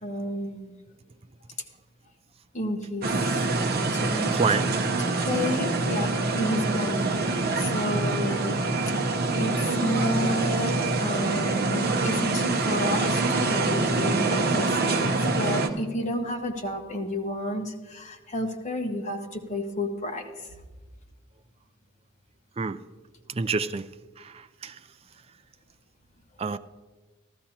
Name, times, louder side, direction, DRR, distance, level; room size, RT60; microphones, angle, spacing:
voice 1, 0.0-0.7 2.5-3.4 3.9-4.3 4.6-4.7 5.3-8.6 9.3-9.5 9.8-20.5, left 1 dB, 35° left, 1.2 m, -31 dB
sound 1, 3.0-15.7, right 3 dB, 50° right, 0.8 m, -25 dB
voice 2, 4.3-4.7 22.6-22.8 23.3-23.9 24.2-24.3 24.6-24.8 26.4-26.6, right 4 dB, 30° right, 0.4 m, -27 dB
14.5 x 13.0 x 2.9 m
head